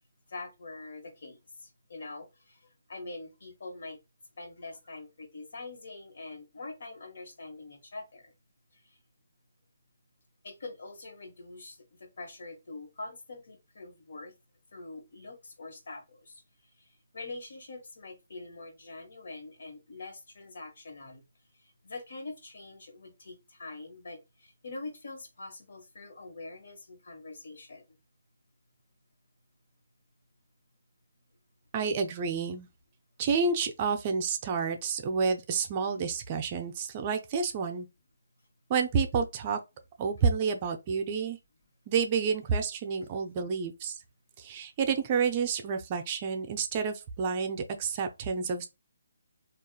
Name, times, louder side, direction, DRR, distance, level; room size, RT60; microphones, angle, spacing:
voice 1, 0.3-4.0 4.4-8.3 8.7-9.0 10.4-14.3 14.7-16.4 16.8-21.2 21.6-27.8, left 3 dB, 65° left, 1.2 m, -44 dB
voice 2, 31.7-32.7 33.2-37.9 38.7-39.6 40.0-41.4 41.9-44.0 44.4-48.7, right 5 dB, 30° right, 0.5 m, -29 dB
3.6 x 2.4 x 2.3 m
hypercardioid pair, 150°, 0 cm